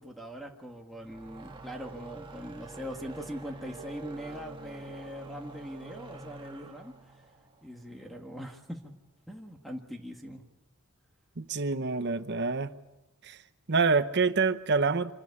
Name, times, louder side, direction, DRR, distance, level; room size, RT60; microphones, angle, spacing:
voice 1, 0.0-6.9 7.6-9.0 9.3-10.4, equal, ahead, 3 dB, 1.6 m, -41 dB
sound 1, 0.9-8.3, right 3 dB, 20° right, 1.6 m, -47 dB
voice 2, 11.4-12.7 13.2-13.4 13.7-15.1, right 4 dB, 50° right, 10 dB, 1.0 m, -26 dB
26.5 x 12.0 x 9.7 m, 1.0 s
head